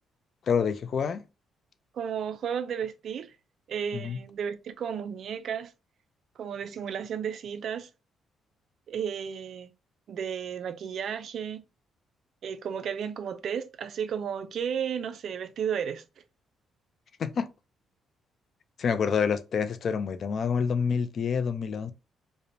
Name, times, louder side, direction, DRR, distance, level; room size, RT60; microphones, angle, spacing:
voice 1, 0.5-1.2 3.9-4.2 17.2-17.5 18.8-21.9, left 6 dB, 55° left, 0.3 m, -27 dB
voice 2, 1.9-3.3 3.7-5.7 6.4-7.9 8.9-9.7 10.1-11.6 12.4-16.0, right 7 dB, 65° right, 0.3 m, -33 dB
2.9 x 2.1 x 2.5 m
cardioid pair, 90°, 0 cm